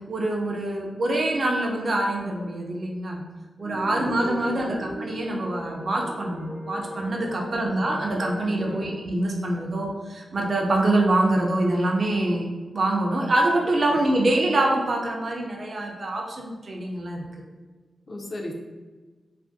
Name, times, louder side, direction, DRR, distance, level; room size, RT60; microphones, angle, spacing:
voice 1, 0.1-3.2 3.6-12.5 12.7-17.4, right 1 dB, 45° right, 0 dB, 0.4 m, -25 dB
sound 1, 3.6-8.9, equal, 75° left, 0.8 m, -37 dB
voice 2, 3.9-4.8 7.4-7.8 8.6-8.9 13.9-14.0 18.1-18.5, left 1 dB, 40° left, -1 dB, 0.4 m, -36 dB
2.5 x 2.4 x 2.5 m, 1.3 s
wide cardioid pair, 135°, 0 cm